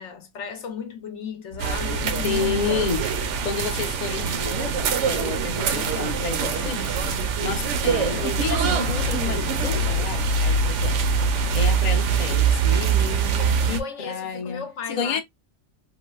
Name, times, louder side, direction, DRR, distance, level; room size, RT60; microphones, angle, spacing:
voice 1, 0.0-2.8 7.9-8.3 13.8-15.2, left 6 dB, 65° left, 0.9 m, -35 dB
sound 1, 1.5-11.6, right 1 dB, 35° right, 0.5 m, -40 dB
sound 2, 1.6-13.8, right 5 dB, 70° right, 0.8 m, -23 dB
voice 2, 2.2-3.1 3.4-14.6 14.9-15.2, left 5 dB, 40° left, 0.6 m, -30 dB
3.9 x 2.0 x 2.3 m
omnidirectional pair, 1.4 m